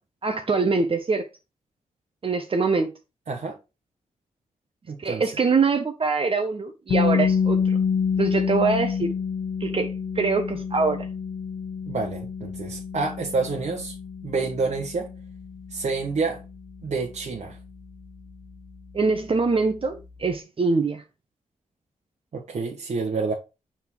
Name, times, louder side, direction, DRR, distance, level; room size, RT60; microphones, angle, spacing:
voice 1, 0.2-1.3 2.2-2.9 5.0-7.8 8.2-9.1 9.6-11.1 18.9-21.0, right 4 dB, 40° right, 0.9 m, -24 dB
voice 2, 3.3-3.6 4.9-5.2 11.9-13.9 14.2-15.1 15.7-16.4 16.8-17.6 22.3-23.3, right 4 dB, 60° right, 1.3 m, -28 dB
sound 1, 6.9-18.7, left 6 dB, 80° left, 1.1 m, -28 dB
5.8 x 3.7 x 4.5 m
cardioid pair, 65°, 14 cm